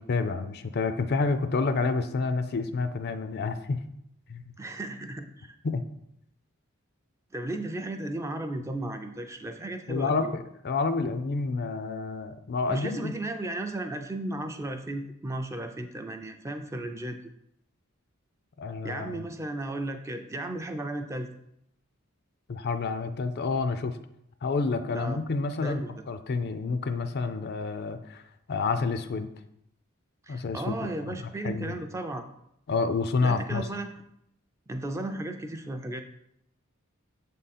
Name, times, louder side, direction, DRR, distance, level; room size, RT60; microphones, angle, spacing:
voice 1, 0.0-3.8 4.3-4.6 5.6-5.8 9.9-13.1 18.6-19.2 22.5-24.0 24.4-25.8 26.1-28.2 28.5-29.3 30.3-30.8 31.4-31.7 32.7-33.6, left 4 dB, 50° left, 10 dB, 0.4 m, -29 dB
voice 2, 4.6-5.5 7.3-10.3 12.7-17.2 18.8-21.3 24.9-25.2 25.6-25.9 30.2-32.3 33.2-33.9 34.7-36.0, right 1 dB, 15° right, 6 dB, 0.4 m, -35 dB
7.2 x 3.7 x 4.2 m, 0.78 s
head